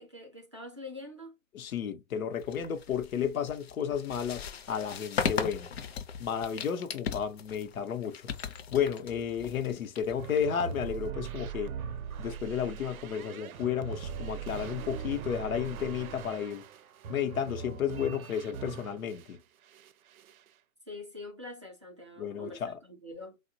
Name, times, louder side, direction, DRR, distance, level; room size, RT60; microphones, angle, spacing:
voice 1, 0.0-1.3 20.9-23.4, left 2 dB, 25° right, 0.4 m, -45 dB
voice 2, 1.5-5.7 6.2-11.7 12.2-16.6 17.1-19.4 22.2-22.8, left 8 dB, 90° left, 0.7 m, -32 dB
sound 1, 2.4-11.1, left 7 dB, 50° left, 0.5 m, -38 dB
sound 2, 10.2-19.3 19.7-20.5, right 7 dB, 90° right, 0.5 m, -40 dB
2.9 x 2.1 x 2.6 m
hypercardioid pair, 155°, 41 cm